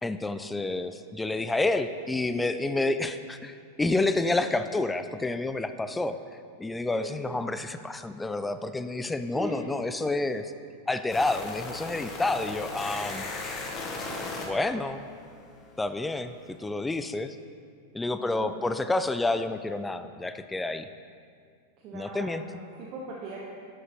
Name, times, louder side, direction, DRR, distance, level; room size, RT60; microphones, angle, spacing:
voice 1, 0.0-6.2 6.6-10.4 10.9-13.3 14.5-15.1 15.8-17.4 17.9-20.9 21.9-22.4, left 2 dB, 10° left, 10 dB, 0.3 m, -29 dB
voice 2, 6.9-7.4 9.3-9.6 10.0-10.1 14.1-14.3 18.2-18.7 21.8-23.4, right 2 dB, 40° right, -3 dB, 0.9 m, -40 dB
sound 1, 11.1-16.0, left 3 dB, 25° left, 0.9 m, -38 dB
11.0 x 6.5 x 2.9 m, 2.2 s
figure-of-eight pair, 90°, 0 cm